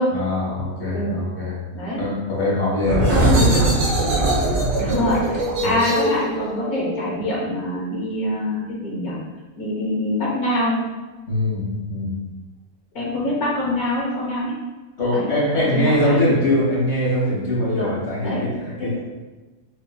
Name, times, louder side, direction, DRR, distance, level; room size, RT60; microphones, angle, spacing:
voice 1, 0.1-1.6 2.0-3.5 5.6-5.8 11.3-12.2 15.0-19.0, left 1 dB, 45° left, -6 dB, 1.8 m, -22 dB
sound 1, 2.8-8.2, right 2 dB, 60° right, 1.5 m, -22 dB
voice 2, 3.1-3.6 4.8-9.1 9.6-10.8 12.9-14.5 15.1-15.3 15.5-16.2 17.7-18.0 18.2-18.4 18.8-19.0, left 1 dB, 65° left, -5 dB, 1.5 m, -24 dB
6.5 x 2.8 x 2.3 m, 1.2 s
omnidirectional pair, 1.7 m